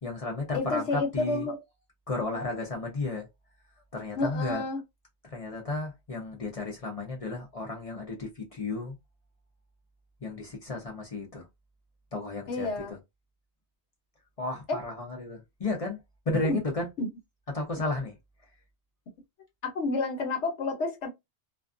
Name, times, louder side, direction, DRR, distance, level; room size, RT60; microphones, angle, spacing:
voice 1, 0.0-1.5 2.1-3.3 3.9-4.6 5.3-8.9 10.2-11.4 12.1-13.0 14.4-16.0 16.3-16.9 17.5-18.1, left 2 dB, 40° left, 0.6 m, -33 dB
voice 2, 0.5-1.6 2.3-2.5 4.2-4.8 12.5-12.9 14.7-14.8 16.4-16.6 17.0-17.1 19.6-21.1, left 3 dB, 80° left, 1.1 m, -30 dB
2.4 x 2.3 x 2.4 m
omnidirectional pair, 1.2 m